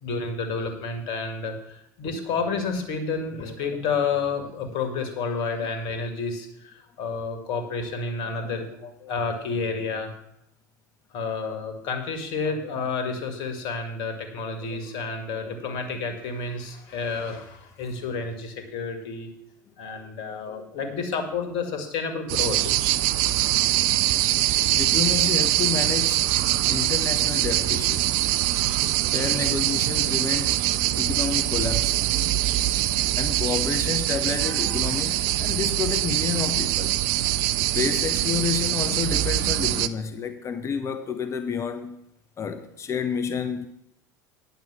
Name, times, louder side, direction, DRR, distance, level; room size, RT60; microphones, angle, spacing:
voice 1, 0.0-10.1 11.1-19.3 19.8-22.8, left 4 dB, 55° left, 2.0 m, -30 dB
sound 1, 22.3-39.9, right 15 dB, 55° right, 0.4 m, -23 dB
voice 2, 24.7-28.1 29.1-30.6 31.0-32.1 33.2-36.9 37.7-42.0 42.4-43.7, left 7 dB, 30° left, 0.9 m, -30 dB
9.6 x 6.7 x 6.1 m
figure-of-eight pair, 75°, 10 cm